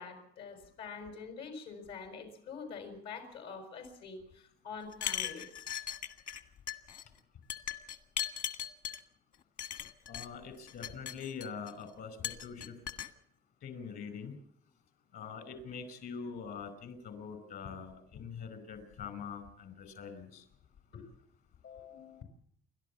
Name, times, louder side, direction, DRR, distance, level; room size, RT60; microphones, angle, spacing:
voice 1, 0.0-5.5 12.2-12.3 17.6-17.7 20.9-21.0 21.6-22.2, left 5 dB, 85° left, 5 dB, 6.1 m, -46 dB
sound 1, 4.9-6.4 6.7-7.0 7.5-9.0 9.6-10.3 10.7-11.7 12.2-13.1, left 9 dB, 50° left, 1.7 m, -38 dB
voice 2, 10.1-12.8 13.6-14.3 15.1-20.4, left 6 dB, 65° left, 12 dB, 5.0 m, -44 dB
29.5 x 12.5 x 7.2 m, 0.69 s
cardioid pair, 110°, 17 cm